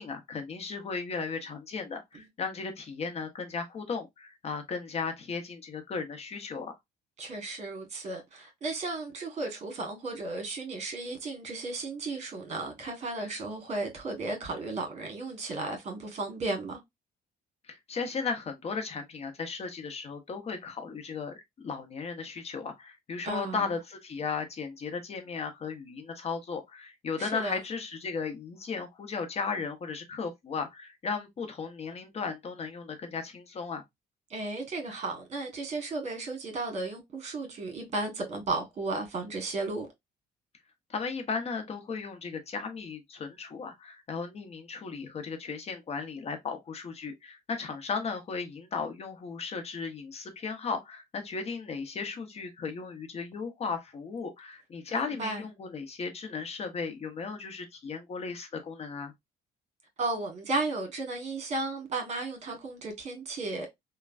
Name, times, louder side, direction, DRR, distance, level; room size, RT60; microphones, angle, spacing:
voice 1, 0.0-6.7 17.7-33.8 40.9-59.1, left 5 dB, 40° left, 0.8 m, -36 dB
voice 2, 7.2-16.8 23.2-23.7 27.2-27.6 34.3-39.9 54.9-55.4 60.0-63.7, right 3 dB, 40° right, 1.3 m, -34 dB
3.2 x 2.2 x 2.4 m
cardioid pair, 110°, 17 cm